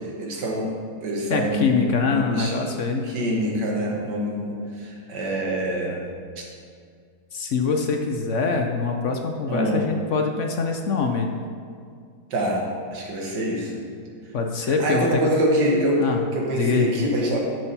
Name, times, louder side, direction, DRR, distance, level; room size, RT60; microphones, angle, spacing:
voice 1, 0.0-2.5 2.9-6.1 6.4-6.5 9.5-9.8 12.3-13.8 14.8-17.4, right 1 dB, 80° right, -2 dB, 2.1 m, -25 dB
voice 2, 1.3-3.1 7.3-11.3 14.3-15.3 16.0-16.2 16.5-17.1, left 4 dB, 55° left, 3 dB, 0.9 m, -24 dB
9.0 x 6.6 x 5.7 m, 2.2 s
omnidirectional pair, 1.8 m